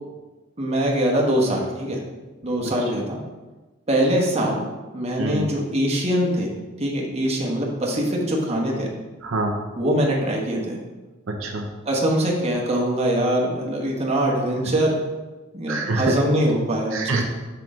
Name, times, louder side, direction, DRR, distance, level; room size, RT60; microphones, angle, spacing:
voice 1, 0.6-2.0 2.4-3.2 3.9-4.6 4.9-6.5 6.8-8.9 9.8-10.8 11.8-15.0 15.5-17.2, right 1 dB, 30° right, -2 dB, 1.2 m, -23 dB
voice 2, 9.2-9.6 11.3-11.6 15.7-16.1 16.9-17.2, right 2 dB, 80° right, 2 dB, 0.8 m, -25 dB
6.1 x 5.7 x 3.7 m, 1.2 s
head